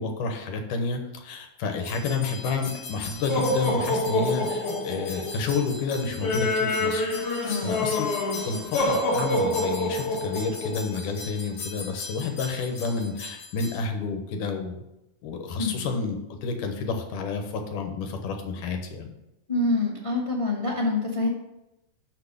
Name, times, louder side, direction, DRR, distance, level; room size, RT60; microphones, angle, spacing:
voice 1, 0.0-7.1 7.6-8.1 8.4-14.8 15.2-19.1, left 4 dB, 85° left, 4 dB, 2.6 m, -30 dB
sound 1, 1.8-13.8, left 2 dB, 50° left, 2.0 m, -28 dB
voice 2, 7.4-7.9 15.6-15.9 19.5-21.3, left 2 dB, 25° left, -1 dB, 0.7 m, -26 dB
6.4 x 6.2 x 6.7 m, 0.90 s
omnidirectional pair, 3.7 m